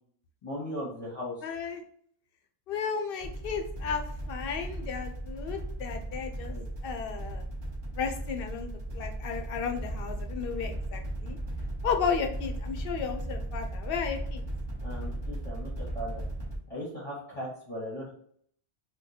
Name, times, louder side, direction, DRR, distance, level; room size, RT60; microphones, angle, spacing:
voice 1, 0.4-1.3 6.5-6.6 14.8-16.2 16.7-18.1, equal, 35° left, -7 dB, 1.0 m, -38 dB
voice 2, 1.4-1.8 2.7-6.5 6.8-7.4 7.9-11.4 11.8-14.4, left 6 dB, 65° left, 5 dB, 0.7 m, -34 dB
sound 1, 3.2-16.6, right 1 dB, 45° right, 0.3 m, -36 dB
2.9 x 2.3 x 3.8 m, 0.64 s
omnidirectional pair, 1.1 m